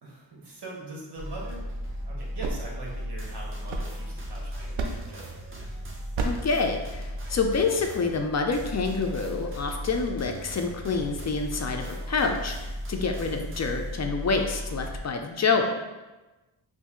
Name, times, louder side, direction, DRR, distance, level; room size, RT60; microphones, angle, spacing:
voice 1, 0.0-1.6 2.0-5.4, right 2 dB, 55° right, -3 dB, 1.2 m, -42 dB
sound 1, 1.2-15.0, equal, 25° right, 0.6 m, -36 dB
sound 2, 2.1-4.3 4.8-5.3 6.1-6.6, right 3 dB, 75° right, 0.6 m, -33 dB
voice 2, 6.2-15.8, left 4 dB, 35° left, 4 dB, 0.4 m, -27 dB
3.0 x 2.6 x 3.7 m, 1.1 s
cardioid pair, 80°, 47 cm